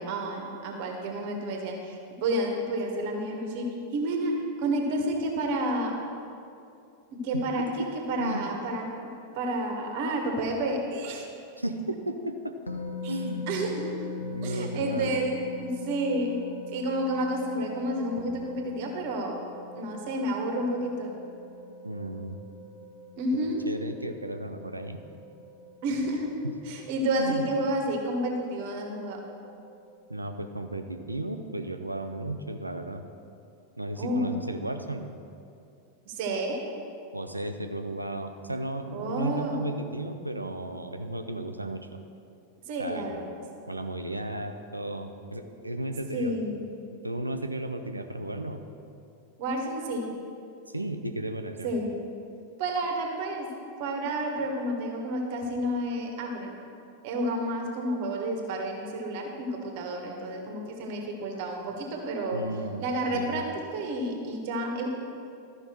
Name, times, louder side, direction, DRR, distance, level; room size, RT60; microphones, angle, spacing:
voice 1, 0.0-3.7 3.9-6.0 7.1-7.6 8.1-8.8 9.3-11.3 13.0-13.2 13.5-14.1 14.4-16.4 16.7-19.3 19.7-21.1 23.2-23.6 25.8-26.3 26.6-29.2 34.0-34.3 36.0-36.6 38.9-39.6 42.7-43.3 46.1-46.6 49.4-50.1 51.6-51.9 52.6-53.5 53.8-56.5 57.0-62.4 62.8-63.5 63.7-64.9, right 1 dB, 50° right, 1 dB, 1.4 m, -30 dB
voice 2, 11.6-12.4 13.0-13.5 14.2-15.1 21.8-22.4 23.7-25.0 26.4-26.5 27.2-27.4 30.1-33.0 33.8-35.1 37.1-41.9 42.8-43.2 43.7-46.3 47.0-48.6 50.7-51.7 62.3-62.9 63.1-63.4, right 1 dB, 85° right, 6 dB, 0.6 m, -34 dB
sound 1, 12.7-32.0, left 3 dB, 80° left, 0.7 m, -43 dB
13.0 x 5.4 x 4.5 m, 2.5 s
figure-of-eight pair, 90°, 0 cm